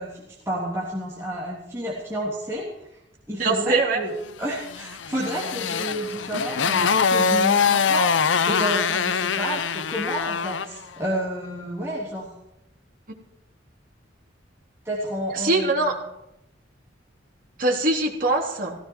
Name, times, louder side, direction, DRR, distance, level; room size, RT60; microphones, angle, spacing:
voice 1, 0.0-2.7 3.3-8.1 8.4-12.3 14.8-16.0, equal, 15° right, -6 dB, 3.2 m, -30 dB
voice 2, 3.4-4.0 15.3-16.0 17.6-18.8, right 2 dB, 50° right, -2 dB, 3.5 m, -22 dB
Motorcycle, 4.7-10.8, left 6 dB, 90° left, 0.7 m, -23 dB
17.0 x 17.0 x 4.7 m, 0.85 s
head